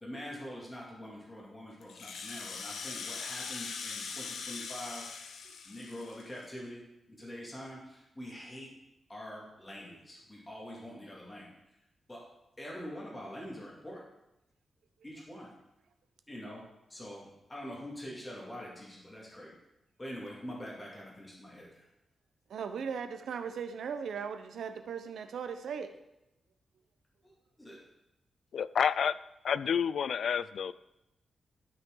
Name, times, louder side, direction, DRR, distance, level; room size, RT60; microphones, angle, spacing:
voice 1, 0.0-5.0 5.6-6.8 7.1-8.7 9.1-11.5 12.1-12.2 12.6-14.0 15.0-15.5 16.3-16.6 16.9-19.6 20.0-21.8 27.2-27.3 27.6-27.8, equal, 15° left, -4 dB, 2.4 m, -44 dB
Rattle (instrument), 1.8-6.6, left 5 dB, 90° left, 0.8 m, -41 dB
voice 2, 22.5-25.9, right 6 dB, 85° right, 8 dB, 0.7 m, -38 dB
voice 3, 28.5-29.2 29.4-30.7, left 7 dB, 65° left, 16 dB, 0.3 m, -29 dB
12.5 x 5.8 x 3.9 m, 0.87 s
wide cardioid pair, 165°, 0 cm